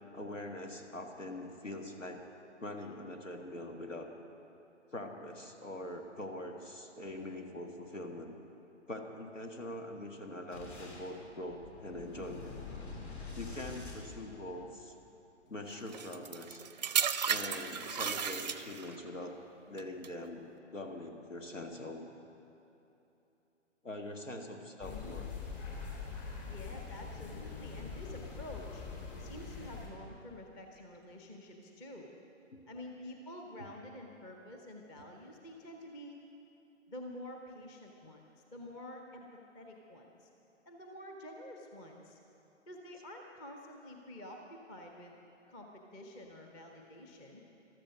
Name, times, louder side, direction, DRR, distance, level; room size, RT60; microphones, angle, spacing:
voice 1, 0.1-2.2 2.6-4.1 4.9-8.3 8.9-12.6 13.4-14.9 15.5-16.7 17.2-19.4 19.7-20.4 20.7-22.0 23.8-25.3 32.5-32.6 33.6-33.7, left 1 dB, 85° left, 3 dB, 1.9 m, -43 dB
Boom, 10.5-14.9, left 4 dB, 60° left, 3.1 m, -46 dB
sound 1, 15.9-19.0 19.8-20.1, right 7 dB, 35° right, 0.5 m, -34 dB
sound 2, 24.8-29.9, left 5 dB, 35° left, 2.5 m, -43 dB
voice 2, 24.9-25.2 26.4-28.9 29.2-32.1 32.7-36.2 36.9-38.2 38.5-39.3 39.5-40.3 40.7-42.2 42.7-45.1 45.5-47.4, left 1 dB, 10° left, 2 dB, 0.7 m, -48 dB
14.0 x 13.0 x 6.4 m, 2.9 s
figure-of-eight pair, 130°, 37 cm